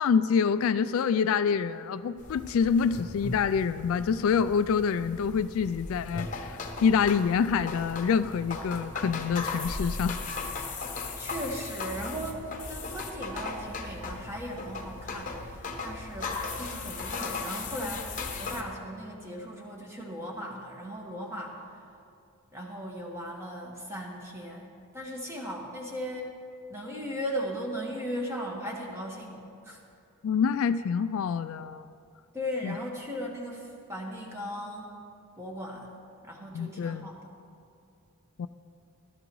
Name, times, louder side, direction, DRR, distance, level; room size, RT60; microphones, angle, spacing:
voice 1, 0.0-10.2 30.2-31.9 32.6-32.8 36.5-37.1 38.4-38.5, left 6 dB, 65° left, 13 dB, 0.3 m, -26 dB
sound 1, 2.2-18.6, left 3 dB, 35° left, 1.0 m, -37 dB
voice 2, 11.2-21.6 22.5-26.3 26.7-29.8 32.3-34.9 35.4-35.9 36.2-37.3, equal, 10° right, -1 dB, 1.5 m, -37 dB
16.5 x 12.5 x 3.1 m, 2.4 s
head